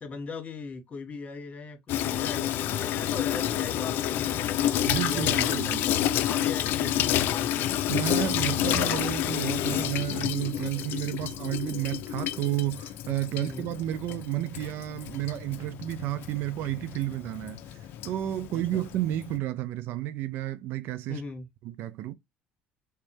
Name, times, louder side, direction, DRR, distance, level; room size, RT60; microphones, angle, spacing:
voice 1, 0.0-4.6 5.0-7.5 13.4-13.7 18.5-18.8 21.1-21.5, left 4 dB, 35° left, 1.6 m, -39 dB
Water tap faucet / Sink (filling or washing), 1.9-19.4, left 11 dB, 65° left, 0.4 m, -29 dB
voice 2, 4.9-5.8 7.9-17.6 18.0-21.2 21.6-22.1, right 14 dB, 70° right, 0.4 m, -31 dB
3.3 x 3.1 x 3.2 m
supercardioid pair, 80°, 4 cm